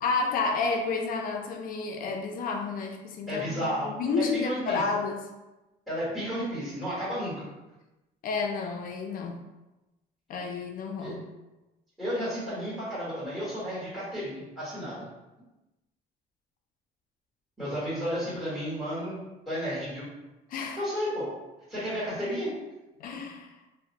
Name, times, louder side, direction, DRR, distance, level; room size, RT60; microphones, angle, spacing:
voice 1, 0.0-5.2 8.2-9.4 10.3-11.2 20.5-20.8 23.0-23.5, left 4 dB, 55° left, 3 dB, 0.4 m, -30 dB
voice 2, 3.3-4.8 5.9-7.5 11.0-11.1 12.0-15.0 17.6-19.2 19.4-20.0 20.8-21.3 21.7-22.5, equal, ahead, -11 dB, 1.3 m, -32 dB
2.5 x 2.0 x 2.8 m, 1.0 s
cardioid pair, 110°, 17 cm